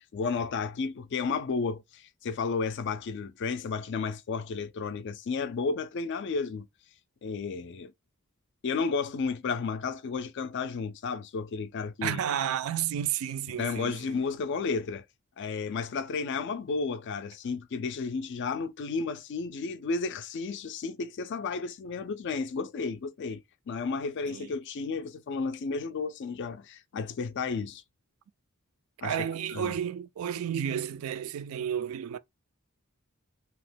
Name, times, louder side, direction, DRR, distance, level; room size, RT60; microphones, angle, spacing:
voice 1, 0.1-6.7 7.2-7.9 8.6-12.2 13.6-15.0 15.4-23.4 23.7-27.8 29.0-29.2 29.5-29.7, left 4 dB, 55° left, 0.4 m, -32 dB
voice 2, 12.0-14.2 24.3-24.6 29.0-32.2, right 9 dB, 70° right, 0.3 m, -32 dB
2.9 x 2.1 x 3.2 m
head